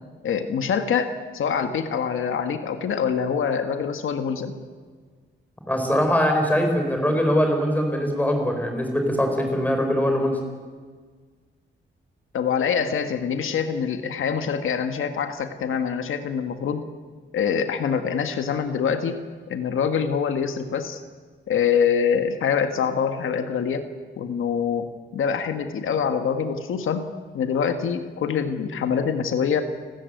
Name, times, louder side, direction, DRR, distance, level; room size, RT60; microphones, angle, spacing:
voice 1, 0.2-4.5 12.3-16.8 17.3-19.2 19.5-21.0 21.5-23.8 24.2-24.9 25.1-27.0 27.3-29.6, left 7 dB, 85° left, 7 dB, 1.7 m, -25 dB
voice 2, 5.7-10.4, equal, 10° left, 3 dB, 5.3 m, -22 dB
30.0 x 14.0 x 9.4 m, 1.5 s
wide cardioid pair, 140°, 20 cm